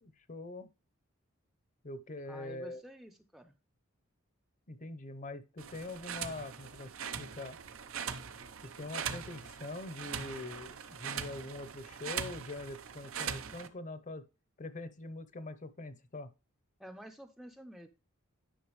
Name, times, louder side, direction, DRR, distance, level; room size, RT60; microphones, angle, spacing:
voice 1, 0.0-0.7 1.8-2.8 4.7-6.9 7.2-7.6 8.6-14.2 14.6-16.3, left 2 dB, 40° left, 0.7 m, -43 dB
voice 2, 2.3-3.5 16.8-17.9, equal, ahead, 0.5 m, -50 dB
sound 1, 5.6-13.7, right 7 dB, 75° right, 0.8 m, -41 dB
10.0 x 5.7 x 3.1 m
head